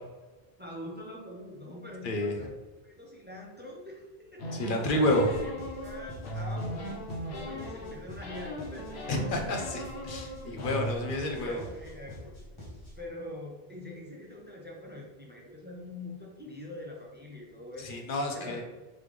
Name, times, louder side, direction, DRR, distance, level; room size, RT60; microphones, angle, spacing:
voice 1, 0.6-5.5 5.8-7.0 7.3-9.0 10.3-12.2 13.0-18.6, left 1 dB, 10° right, -2 dB, 0.6 m, -44 dB
voice 2, 2.0-2.5 4.5-5.3 9.1-11.6 17.8-18.6, left 1 dB, 60° left, 2 dB, 0.9 m, -29 dB
sound 1, 4.4-7.9 8.2-11.0, equal, 80° left, 1.0 m, -38 dB
sound 2, 5.1-13.1, equal, 30° left, 1.2 m, -46 dB
3.8 x 3.3 x 3.2 m, 1.2 s
omnidirectional pair, 1.0 m